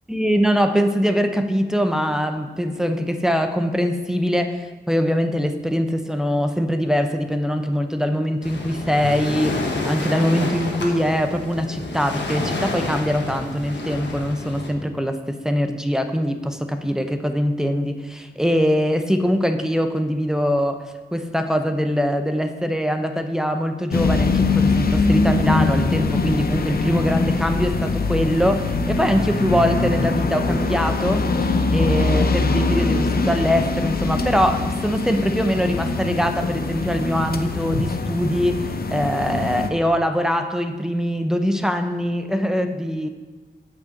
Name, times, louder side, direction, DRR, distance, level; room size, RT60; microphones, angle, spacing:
voice 1, 0.1-20.9 21.1-31.3 31.7-43.1, equal, 5° right, 7 dB, 0.6 m, -22 dB
Waves surf, 8.4-14.7, left 2 dB, 85° left, 1.2 m, -29 dB
sound 1, 23.9-39.7, left 3 dB, 55° left, 0.7 m, -22 dB
8.6 x 4.7 x 6.5 m, 1.3 s
wide cardioid pair, 130°, 18 cm